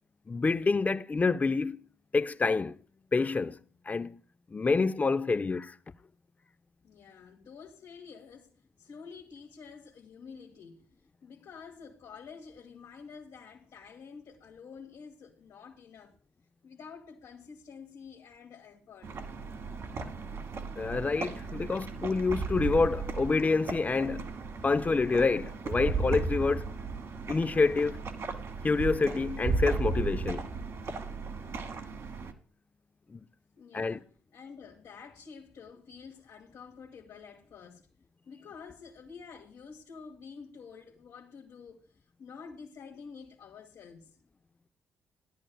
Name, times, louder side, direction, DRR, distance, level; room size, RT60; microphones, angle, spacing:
voice 1, 0.3-1.8 2.1-2.8 3.1-3.6 3.9-4.2 4.5-5.8 20.8-24.3 24.6-26.7 27.3-28.0 28.6-30.5 33.1-33.2 33.7-34.0, left 4 dB, 30° left, 0.5 m, -27 dB
voice 2, 6.8-8.5 8.8-10.8 11.2-16.1 16.6-19.1 33.6-37.9 38.2-44.2, left 5 dB, 65° left, 1.5 m, -49 dB
sound 1, 19.0-32.3, right 4 dB, 60° right, 1.4 m, -35 dB
15.0 x 10.5 x 2.3 m
hypercardioid pair, 50°, 6 cm